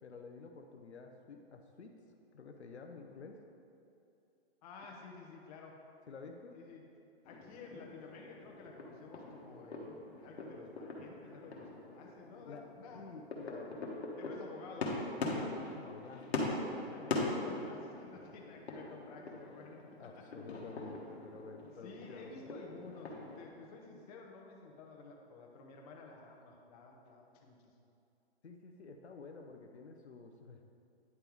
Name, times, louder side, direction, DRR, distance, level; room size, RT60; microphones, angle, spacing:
voice 1, 0.0-2.0 2.3-3.4 6.1-6.6 12.5-12.7 12.9-14.0 15.2-17.5 20.0-22.3 28.4-30.6, left 4 dB, 90° left, 4 dB, 0.7 m, -50 dB
voice 2, 4.6-5.8 6.5-6.8 7.2-13.1 14.1-14.9 16.9-19.8 20.2-20.3 21.2-21.4 21.8-27.6, left 4 dB, 35° left, 0 dB, 1.0 m, -52 dB
sound 1, 7.2-23.5, left 2 dB, 70° left, 1.4 m, -42 dB
9.6 x 3.4 x 4.6 m, 2.7 s
hypercardioid pair, 135°, 32 cm